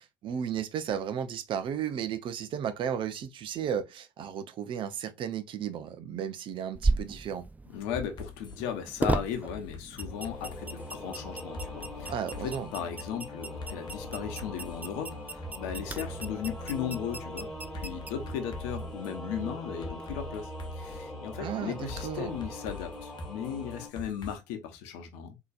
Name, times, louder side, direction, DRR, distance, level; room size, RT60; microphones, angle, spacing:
voice 1, 0.0-7.4 12.1-12.7 21.4-22.4, right 8 dB, 55° right, 0.6 m, -34 dB
sound 1, 6.7-19.0, right 3 dB, 15° right, 0.5 m, -37 dB
voice 2, 7.7-12.1 12.4-17.5 17.7-20.5 20.8-25.4, left 8 dB, 75° left, 0.8 m, -36 dB
sound 2, 7.9-8.6 9.5-10.9 11.5-12.7 13.6-14.9 15.4-16.8 17.7-19.1 19.8-21.0 21.9-24.3, left 4 dB, 45° left, 0.9 m, -44 dB
Singing / Musical instrument, 10.0-23.9, left 1 dB, 5° left, 2.3 m, -41 dB
3.9 x 2.9 x 2.4 m
hypercardioid pair, 55°, 10 cm